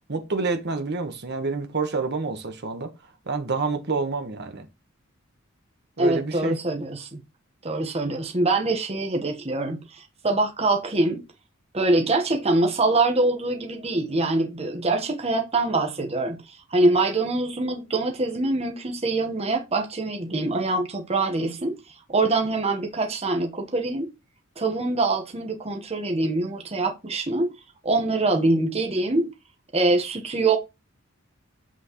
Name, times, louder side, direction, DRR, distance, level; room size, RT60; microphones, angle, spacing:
voice 1, 0.1-2.9 3.3-4.7 6.0-6.6, right 4 dB, 55° right, 1.3 m, -28 dB
voice 2, 6.0-7.2 7.6-11.2 11.7-21.7 22.1-24.1 24.6-27.5 27.8-29.3 29.7-30.6, right 2 dB, 30° right, 1.2 m, -24 dB
7.8 x 6.2 x 3.1 m
head